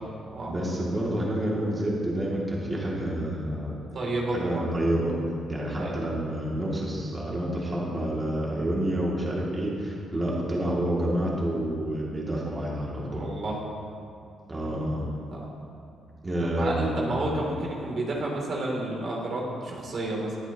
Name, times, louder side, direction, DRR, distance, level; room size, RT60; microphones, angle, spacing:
voice 1, 0.4-3.9 4.3-5.1 5.5-13.2 14.5-15.1 16.2-17.3, right 1 dB, 25° right, -5 dB, 2.7 m, -28 dB
voice 2, 3.9-4.7 5.7-5.9 13.1-13.6 15.3-15.7 16.6-20.3, right 2 dB, 50° right, -3 dB, 3.2 m, -31 dB
22.0 x 8.3 x 3.1 m, 2.5 s
cardioid pair, 90°, 0 cm